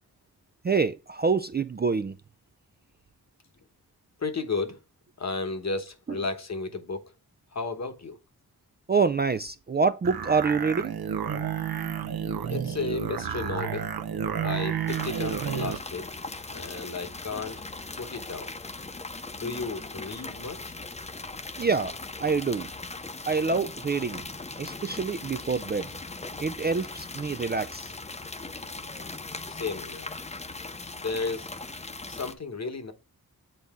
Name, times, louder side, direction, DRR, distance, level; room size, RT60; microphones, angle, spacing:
voice 1, 0.6-2.2 6.1-6.2 8.9-11.0 21.6-21.9 22.2-22.7 23.3-24.3 24.6-25.9 26.4-27.9, right 4 dB, 30° right, 0.3 m, -26 dB
voice 2, 4.2-4.8 5.2-7.1 7.5-8.2 12.5-13.9 14.4-16.2 16.5-17.7 18.0-18.5 19.3-20.8 29.5-30.1 31.0-31.5 32.1-32.9, left 4 dB, 45° left, 1.1 m, -33 dB
sound 1, 10.0-15.8, right 8 dB, 75° right, 0.7 m, -31 dB
sound 2, 14.9-32.3, left 3 dB, 20° left, 0.6 m, -39 dB
7.8 x 4.1 x 3.6 m
wide cardioid pair, 85°, 37 cm